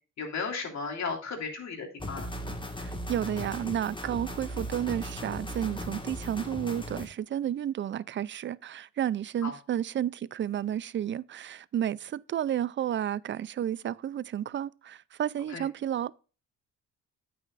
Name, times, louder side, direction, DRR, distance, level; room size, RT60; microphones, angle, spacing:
voice 1, 0.2-2.3 9.4-9.5 15.5-15.6, left 5 dB, 60° left, 3.2 m, -35 dB
sound 1, 2.0-7.1, equal, 15° left, 1.7 m, -37 dB
voice 2, 2.8-16.1, right 10 dB, 40° right, 0.4 m, -32 dB
9.2 x 8.6 x 2.5 m
cardioid pair, 90°, 30 cm